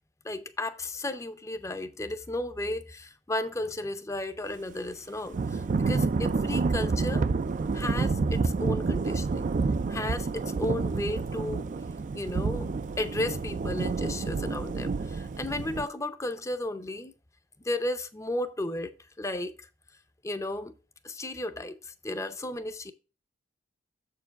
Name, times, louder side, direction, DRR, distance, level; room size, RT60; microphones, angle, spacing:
voice 1, 0.2-7.3 7.7-9.5 9.9-11.7 12.1-17.1 17.6-19.7 20.2-20.8 21.0-22.9, left 1 dB, 15° left, 0.6 m, -34 dB
Thunder / Rain, 5.3-15.9, right 4 dB, 45° right, 0.3 m, -29 dB
7.1 x 4.6 x 5.7 m
head